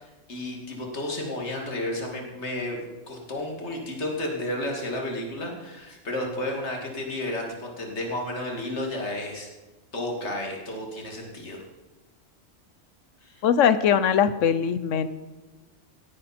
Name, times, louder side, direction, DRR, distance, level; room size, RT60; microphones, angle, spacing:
voice 1, 0.0-2.8 3.1-9.5 9.9-11.6 13.2-13.4, left 1 dB, 65° left, 1 dB, 2.6 m, -32 dB
voice 2, 13.4-15.1, left 8 dB, 80° left, 13 dB, 1.1 m, -21 dB
18.0 x 10.0 x 4.3 m, 1.1 s
omnidirectional pair, 1.3 m